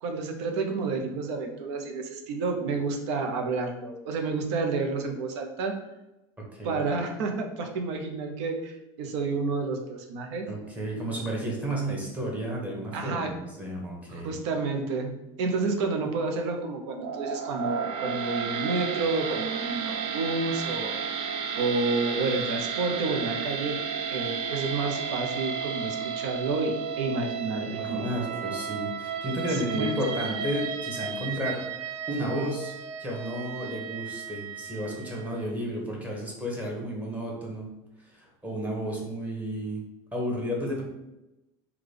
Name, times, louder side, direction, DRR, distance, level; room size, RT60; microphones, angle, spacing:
voice 1, 0.0-5.7 6.6-10.5 12.9-13.3 14.1-20.9 21.6-23.8 24.1-28.1 29.5-30.2, right 3 dB, 85° right, 4 dB, 0.7 m, -30 dB
voice 2, 10.5-14.3 27.6-31.6 32.1-32.7 33.0-37.7 38.1-39.8 40.1-40.8, equal, 10° right, -2 dB, 0.9 m, -32 dB
sound 1, 17.0-35.2, right 6 dB, 40° right, 0.4 m, -33 dB
3.7 x 2.3 x 3.3 m, 0.95 s
supercardioid pair, 135°, 14 cm